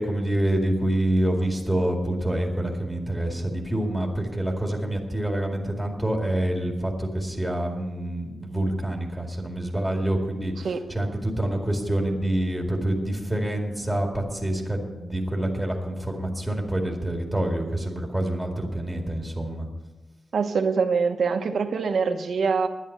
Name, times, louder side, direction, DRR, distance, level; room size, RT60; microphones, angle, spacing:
voice 1, 0.0-19.7, right 1 dB, ahead, 0 dB, 2.1 m, -27 dB
voice 2, 20.3-22.7, right 5 dB, 65° right, 7 dB, 1.0 m, -24 dB
11.0 x 10.5 x 6.7 m, 1.1 s
wide cardioid pair, 150°, 0 cm